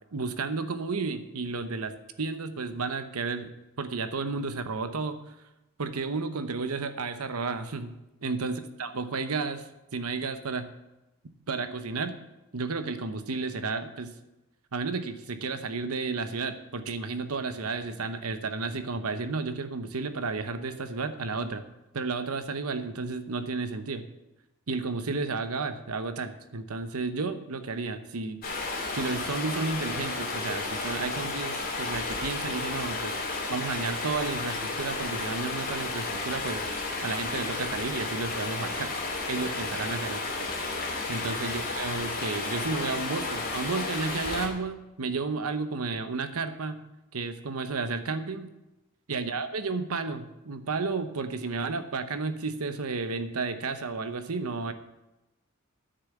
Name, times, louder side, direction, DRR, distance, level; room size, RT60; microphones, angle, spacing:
voice 1, 0.1-3.5 3.8-5.2 5.8-9.7 9.9-10.7 11.5-12.2 12.5-14.1 14.7-21.7 21.9-24.0 24.7-28.4 28.9-33.2 33.5-36.7 37.0-38.9 39.3-40.5 41.1-46.8 47.1-48.5 49.1-54.7, right 4 dB, 90° right, 9 dB, 0.9 m, -32 dB
Stream, 28.4-44.5, left 3 dB, 45° left, 2.6 m, -32 dB
9.6 x 6.9 x 8.3 m, 0.97 s
head